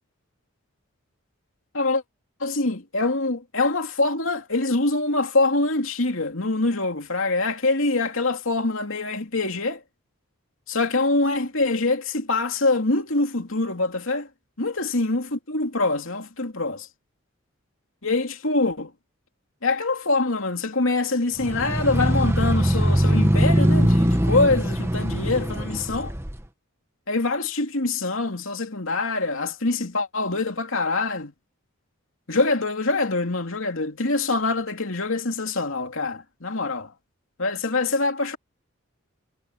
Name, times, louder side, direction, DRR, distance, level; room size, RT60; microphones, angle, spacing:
voice 1, 2.4-9.8 10.7-14.3 14.6-16.9 18.0-18.9 19.6-26.1 27.1-31.3 32.3-36.9 37.4-38.4, left 3 dB, 70° left, 2.9 m, -24 dB
sound 1, 21.4-26.4, equal, 10° right, 1.3 m, -21 dB
head